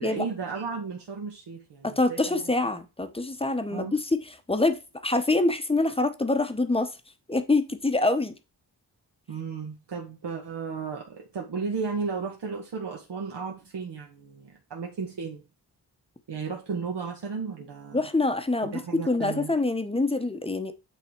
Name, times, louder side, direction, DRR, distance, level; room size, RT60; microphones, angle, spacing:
voice 1, 0.0-2.5 3.7-4.0 9.3-15.4 16.3-18.1 18.7-19.5, right 5 dB, 80° right, 1.6 m, -34 dB
voice 2, 1.8-6.9 7.3-8.4 17.9-20.7, left 2 dB, 15° left, 0.8 m, -25 dB
8.9 x 3.7 x 4.4 m
wide cardioid pair, 145°, 41 cm